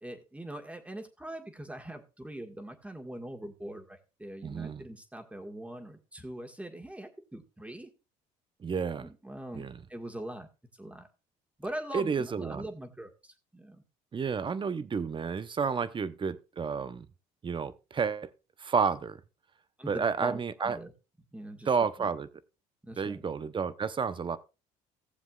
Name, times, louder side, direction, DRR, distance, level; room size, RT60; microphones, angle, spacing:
voice 1, 0.0-7.9 8.9-10.5 10.8-11.1 11.6-13.8 19.8-20.9 21.3-21.7 22.0-22.1 22.8-23.2, right 1 dB, 10° right, 1.8 m, -42 dB
voice 2, 4.4-4.8 8.6-9.1 9.5-9.8 11.9-12.7 14.1-17.1 17.4-18.3 18.6-19.2 19.9-20.8 21.7-22.3 23.0-24.4, right 6 dB, 30° right, 0.9 m, -31 dB
17.0 x 7.2 x 2.4 m
supercardioid pair, 75°, 16 cm